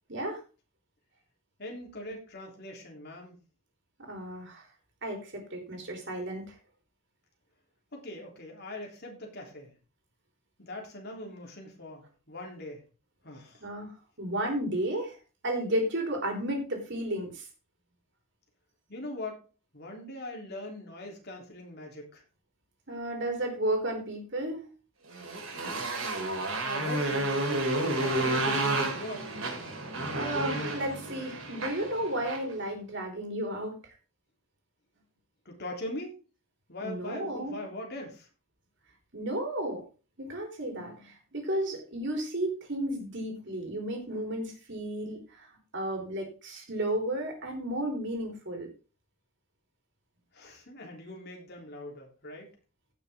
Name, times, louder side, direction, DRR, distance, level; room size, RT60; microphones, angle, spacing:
voice 1, 0.1-0.4 4.0-4.7 5.0-6.5 13.6-15.2 15.4-17.5 22.9-24.7 28.1-28.5 30.1-33.7 36.8-37.6 39.1-39.8 40.2-48.7, right 1 dB, 55° right, 2 dB, 3.8 m, -33 dB
voice 2, 1.6-3.4 7.9-9.7 10.6-12.8 13.2-13.7 18.9-19.4 19.7-22.2 26.6-27.3 28.0-29.3 35.4-36.2 36.7-38.3 50.3-52.5, left 1 dB, 50° left, 0 dB, 3.4 m, -41 dB
Motorcycle, 25.1-32.5, right 2 dB, 70° right, 3.8 m, -31 dB
16.5 x 6.9 x 3.7 m, 0.33 s
head